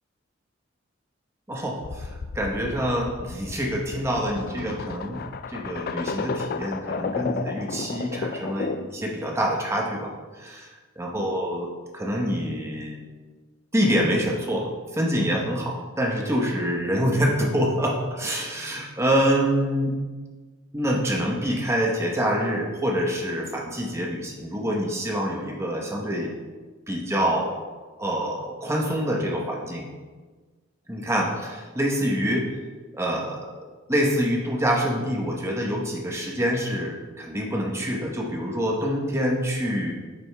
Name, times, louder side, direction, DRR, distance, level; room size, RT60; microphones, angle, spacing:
voice 1, 1.5-5.2 5.5-10.7 11.0-13.0 13.7-19.9 20.7-26.3 26.9-27.5 28.0-29.8 30.9-32.5 32.9-33.5 33.9-39.9, equal, 15° right, -1 dB, 0.9 m, -26 dB
sound 1, 1.8-9.0, left 4 dB, 50° left, 0.3 m, -33 dB
9.1 x 5.2 x 3.3 m, 1.4 s
head